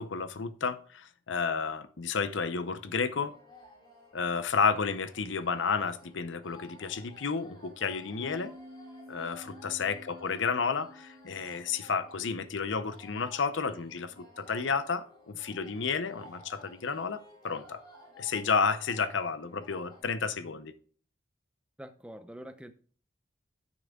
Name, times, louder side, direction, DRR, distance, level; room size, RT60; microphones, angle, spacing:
voice 1, 0.0-3.3 4.1-8.5 9.1-17.8 18.2-20.7, left 5 dB, 75° left, 0.7 m, -31 dB
sound 1, 2.6-20.0, left 1 dB, 25° left, 3.1 m, -55 dB
sound 2, 8.2-13.5, equal, 25° right, 3.4 m, -51 dB
voice 2, 21.8-22.7, equal, 5° right, 0.6 m, -45 dB
9.8 x 8.6 x 2.3 m
head